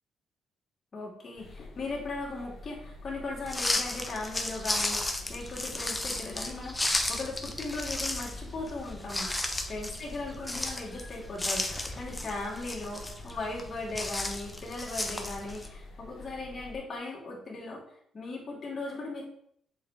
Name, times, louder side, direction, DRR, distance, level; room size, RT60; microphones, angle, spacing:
voice 1, 0.9-11.7 12.0-17.8 18.1-19.2, left 2 dB, 40° left, -4 dB, 2.6 m, -38 dB
sound 1, 1.4-16.8, left 2 dB, 55° left, 1.7 m, -48 dB
sound 2, 3.5-15.7, left 1 dB, 15° left, 0.9 m, -34 dB
7.1 x 4.1 x 3.6 m, 0.68 s
cardioid pair, 90°, 0 cm